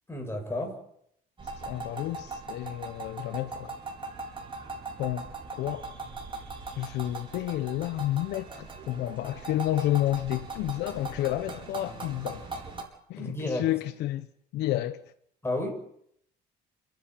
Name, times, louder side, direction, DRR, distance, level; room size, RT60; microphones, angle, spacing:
voice 1, 0.1-0.8 13.2-13.7 15.4-15.7, left 1 dB, 15° left, 7.9 m, -31 dB
sound 1, 1.4-12.8, right 3 dB, 30° right, 5.0 m, -40 dB
voice 2, 1.6-3.7 5.0-5.3 5.6-5.9 6.8-12.5 13.1-14.3 14.5-15.0, left 14 dB, 85° left, 1.1 m, -30 dB
29.0 x 11.0 x 9.9 m
cardioid pair, 110°, 17 cm